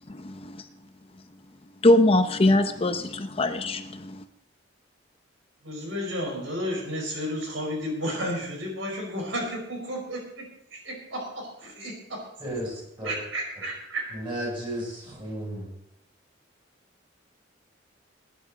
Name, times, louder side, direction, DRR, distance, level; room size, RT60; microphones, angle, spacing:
voice 1, 0.1-0.6 1.8-4.2, left 1 dB, 30° left, 0.6 m, -22 dB
voice 2, 5.6-10.4 10.7-12.2 13.0-14.0, equal, 75° right, 4.8 m, -32 dB
voice 3, 12.4-13.1 14.1-15.6, right 1 dB, 25° right, 7.5 m, -33 dB
20.0 x 10.5 x 4.1 m
head